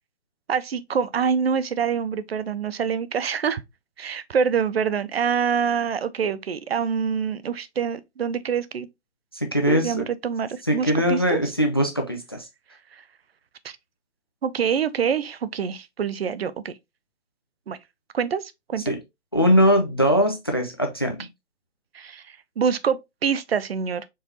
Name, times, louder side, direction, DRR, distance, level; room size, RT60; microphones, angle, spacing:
voice 1, 0.5-3.6 4.0-8.9 9.7-11.4 13.6-13.8 14.4-16.7 17.7-17.8 18.1-18.8 21.9-24.1, right 7 dB, 60° right, 0.5 m, -25 dB
voice 2, 9.3-10.1 10.6-12.5 18.9-19.0 19.3-21.3, equal, 25° left, 0.3 m, -21 dB
4.4 x 3.2 x 2.7 m
figure-of-eight pair, 135°, 35 cm